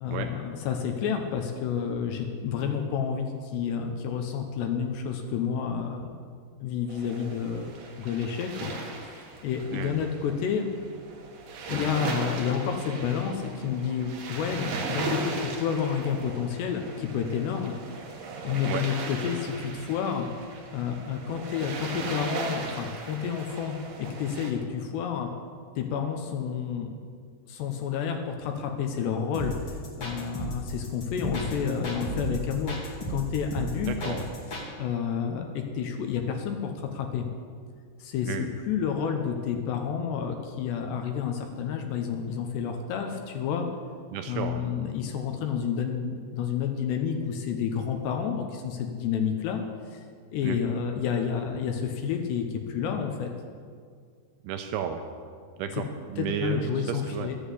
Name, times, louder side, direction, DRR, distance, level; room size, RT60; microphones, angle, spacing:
voice 1, 0.0-6.1 6.6-7.7 8.0-8.7 9.0-10.7 11.7-17.8 18.4-20.3 20.7-25.3 25.8-26.9 27.5-34.2 34.8-37.3 38.0-43.7 44.3-49.6 49.9-50.0 50.3-53.3 56.2-57.4, left 7 dB, 75° left, 4 dB, 2.9 m, -30 dB
sound 1, 6.9-24.5, right 3 dB, 65° right, 2.1 m, -38 dB
sound 2, 29.3-34.7, right 1 dB, 40° left, 1.9 m, -34 dB
voice 2, 33.8-34.3 38.3-38.5 44.1-44.6 50.4-50.6 54.4-55.0 55.6-57.4, right 9 dB, 85° right, 6 dB, 2.2 m, -33 dB
13.5 x 8.2 x 8.2 m, 2.1 s
omnidirectional pair, 5.4 m